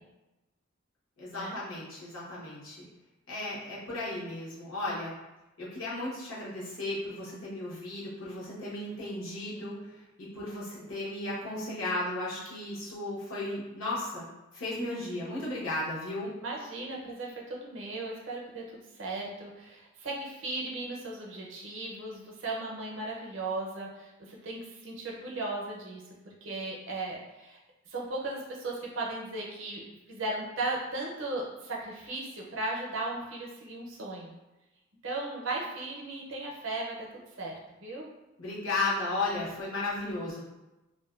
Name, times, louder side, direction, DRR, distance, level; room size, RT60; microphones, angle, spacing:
voice 1, 1.2-2.8 3.3-5.1 5.6-14.3 14.5-16.3 38.4-40.4, left 2 dB, 80° left, -7 dB, 0.9 m, -35 dB
voice 2, 16.4-26.0 26.4-27.6 27.9-29.8 30.1-34.3 35.0-37.1 37.4-38.1, right 2 dB, 65° right, -2 dB, 0.5 m, -36 dB
2.5 x 2.2 x 2.3 m, 1.0 s
head